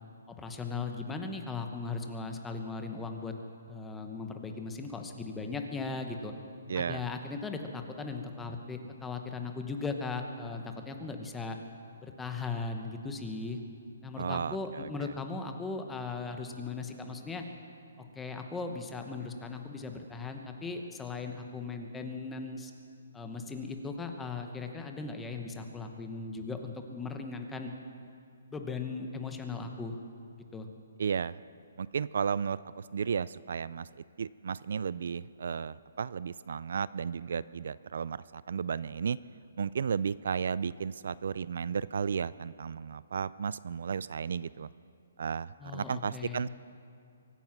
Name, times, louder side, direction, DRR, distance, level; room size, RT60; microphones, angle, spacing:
voice 1, 0.3-3.3 3.7-6.3 6.7-11.6 12.0-13.6 14.0-17.4 18.0-22.7 23.1-27.7 28.5-30.0 30.5-30.7 45.6-46.5, left 4 dB, 5° left, 5 dB, 0.9 m, -38 dB
voice 2, 6.7-7.0 14.2-15.1 31.0-31.4 31.8-33.9 34.2-39.2 39.6-44.7 45.2-46.5, right 6 dB, 60° right, 19 dB, 0.3 m, -34 dB
24.0 x 9.2 x 5.9 m, 2.6 s
hypercardioid pair, 165°, 0 cm